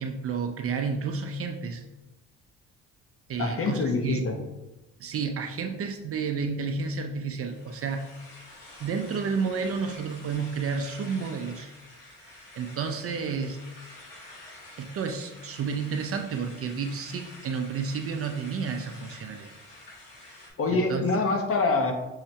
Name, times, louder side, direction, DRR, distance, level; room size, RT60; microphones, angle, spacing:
voice 1, 0.0-1.8 3.3-4.3 5.0-8.1 8.8-11.7 12.2-13.6 14.8-19.5 20.2-21.1, right 5 dB, 45° right, 5 dB, 0.4 m, -31 dB
voice 2, 3.4-4.4 20.6-21.9, left 3 dB, 40° left, 4 dB, 0.7 m, -25 dB
sound 1, 7.4-20.5, left 1 dB, 80° left, 1.3 m, -48 dB
5.6 x 2.0 x 2.7 m, 1.0 s
supercardioid pair, 70°, 34 cm